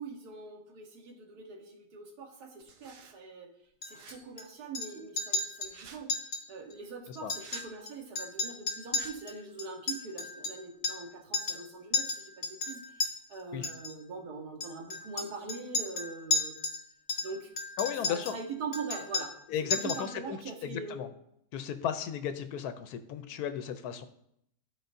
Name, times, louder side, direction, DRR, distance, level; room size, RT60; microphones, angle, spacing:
voice 1, 0.0-3.5 3.8-6.2 6.5-16.6 17.2-17.5 18.0-21.0, right 4 dB, 85° right, 2 dB, 1.7 m, -42 dB
sound 1, 2.6-3.1 3.9-4.2 5.6-6.0 7.3-7.7 8.9-9.1, right 6 dB, 65° right, 1.0 m, -50 dB
Chink clink, 3.8-4.4 4.7-4.9 5.2-5.7 6.1-6.4 6.7-6.8 7.2-7.9 8.2-11.1 11.3-11.6 11.9-13.1 13.6-13.9 14.6-16.8 17.1-18.4 18.7-19.4 19.7-20.1, left 3 dB, 55° left, 1.6 m, -33 dB
voice 2, 17.8-18.4 19.5-21.1 21.5-24.1, left 9 dB, 85° left, 9 dB, 1.1 m, -35 dB
13.5 x 4.5 x 2.6 m, 0.73 s
omnidirectional pair, 1.6 m